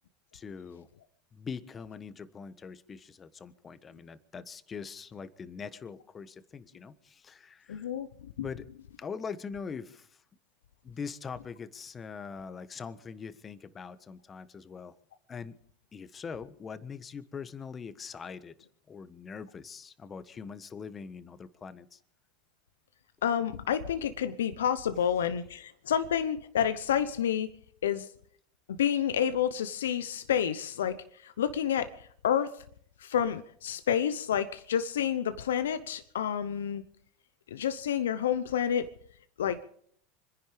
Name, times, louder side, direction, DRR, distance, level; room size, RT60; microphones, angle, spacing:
voice 1, 0.3-0.9 1.3-7.9 8.4-8.7 9.0-10.2 10.8-14.9 15.3-15.6 15.9-18.6 18.9-22.0, left 6 dB, 25° left, 13 dB, 1.3 m, -42 dB
voice 2, 7.7-8.1 8.4-8.5 23.2-27.5 27.8-28.1 28.8-32.6 33.0-36.8 37.5-38.9 39.4-39.6, left 9 dB, 85° left, 11 dB, 0.8 m, -29 dB
26.0 x 10.5 x 5.1 m, 0.62 s
hypercardioid pair, 90°, 0 cm